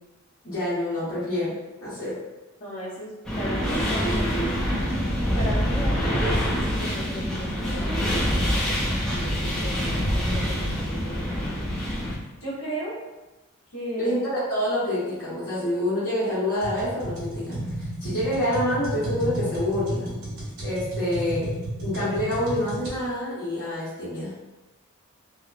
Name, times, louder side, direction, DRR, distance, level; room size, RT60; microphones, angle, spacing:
voice 1, 0.4-1.6 1.8-2.1 14.0-20.2 20.6-21.5 21.8-24.3, left 1 dB, 50° left, -15 dB, 1.0 m, -27 dB
voice 2, 2.6-4.4 4.8-12.0 12.4-13.0 13.7-14.3, right 1 dB, 80° left, -9 dB, 0.8 m, -36 dB
sound 1, 3.2-12.2, equal, ahead, 0.4 m, -25 dB
sound 2, 16.6-23.0, right 1 dB, 85° right, 1.2 m, -32 dB
2.8 x 2.0 x 2.4 m, 1.1 s
head